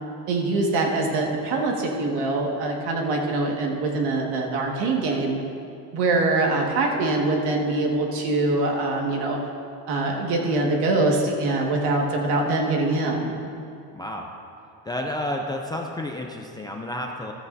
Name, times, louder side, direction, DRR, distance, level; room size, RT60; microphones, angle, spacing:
voice 1, 0.3-5.3 5.9-9.4 9.9-13.3, right 2 dB, 80° right, 0 dB, 1.8 m, -23 dB
voice 2, 13.9-14.3 14.8-17.3, left 1 dB, 10° left, 0 dB, 0.3 m, -30 dB
14.0 x 13.0 x 2.6 m, 2.5 s
cardioid pair, 175°, 39 cm